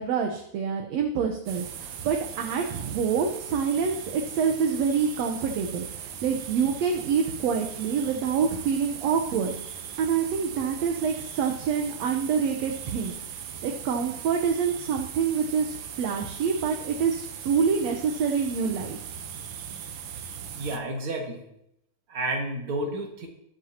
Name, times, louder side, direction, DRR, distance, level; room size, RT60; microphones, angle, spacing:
voice 1, 0.0-9.6 10.0-13.2 13.6-19.0, right 6 dB, 70° right, 3 dB, 2.0 m, -26 dB
sound 1, 1.5-20.8, right 8 dB, 90° right, 2.4 m, -39 dB
voice 2, 20.5-21.5 22.1-23.3, right 1 dB, 50° right, 0 dB, 2.6 m, -31 dB
20.5 x 7.7 x 2.9 m, 0.78 s
omnidirectional pair, 3.4 m